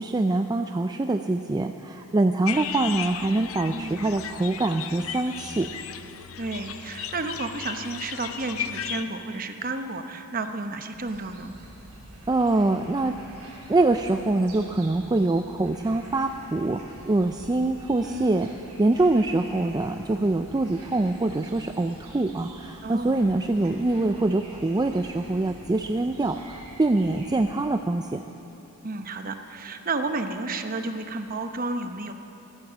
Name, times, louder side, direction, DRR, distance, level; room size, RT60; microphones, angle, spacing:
voice 1, 0.0-5.7 12.3-13.1 13.7-18.5 18.8-28.2, right 2 dB, 20° right, 6 dB, 0.3 m, -24 dB
sound 1, 2.4-9.0, left 9 dB, 65° left, 0.7 m, -35 dB
voice 2, 3.7-4.1 6.4-11.5 18.0-18.5 22.8-23.2 28.8-32.1, right 3 dB, 40° right, 7 dB, 0.8 m, -32 dB
sound 2, 10.9-27.4, right 1 dB, 75° right, 3.1 m, -47 dB
14.0 x 13.5 x 7.4 m, 3.0 s
head